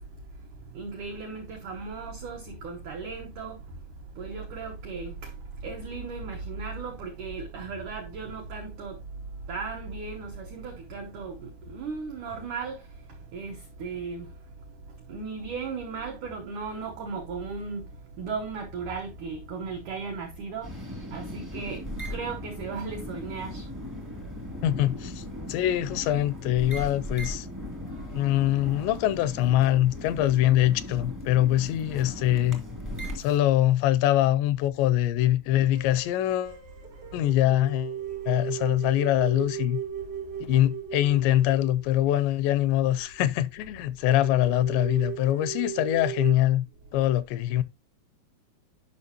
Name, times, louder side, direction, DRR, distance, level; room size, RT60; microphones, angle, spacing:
voice 1, 0.7-3.6 4.2-5.3 5.6-9.0 9.5-12.8 13.3-14.3 15.1-17.9 18.2-20.7 21.1-21.8 22.1-23.7, right 4 dB, 85° right, 1.7 m, -36 dB
sound 1, 20.6-33.4, left 1 dB, 20° right, 0.4 m, -38 dB
voice 2, 24.6-27.5 28.1-32.6 33.2-36.6 37.1-38.0 38.3-39.8 40.4-46.6 46.9-47.6, left 13 dB, 85° left, 2.8 m, -23 dB
sound 2, 35.7-43.0 43.4-43.5 43.7-43.8 44.0-46.3, right 9 dB, 60° right, 1.1 m, -37 dB
10.5 x 5.7 x 2.8 m
omnidirectional pair, 5.1 m